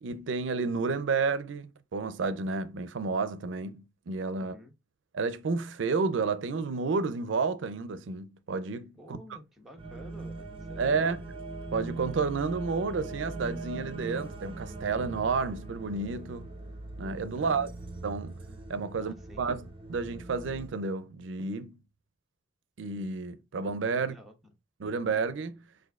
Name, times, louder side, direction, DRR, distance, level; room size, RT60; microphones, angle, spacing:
voice 1, 0.0-4.6 5.1-9.2 10.8-11.2 11.7-16.5 17.0-17.7 18.0-18.3 18.7-21.8 22.8-24.1 24.8-25.6, right 4 dB, 85° right, 0.4 m, -31 dB
voice 2, 4.3-4.7 8.9-11.2 17.3-17.7 18.9-19.4 23.9-24.3, equal, ahead, 0.9 m, -51 dB
sound 1, 9.8-20.7, right 2 dB, 30° right, 0.7 m, -41 dB
6.2 x 2.6 x 2.3 m
head